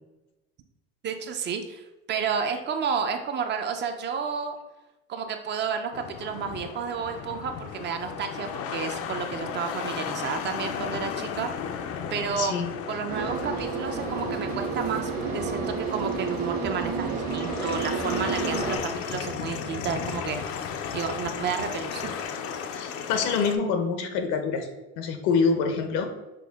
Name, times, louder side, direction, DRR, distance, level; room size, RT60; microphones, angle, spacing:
voice 1, 1.0-4.6 5.1-11.5 12.1-12.5 12.9-20.4 20.9-22.1, right 6 dB, 40° right, 6 dB, 0.5 m, -31 dB
sound 1, 5.9-23.6, left 7 dB, 50° left, 0.4 m, -35 dB
voice 2, 12.4-12.7 22.7-24.7 25.0-26.1, left 5 dB, 75° left, 7 dB, 0.8 m, -26 dB
sound 2, 13.1-18.8, right 4 dB, 60° right, 1.3 m, -30 dB
6.0 x 2.1 x 3.5 m, 1.0 s
cardioid pair, 125°, 29 cm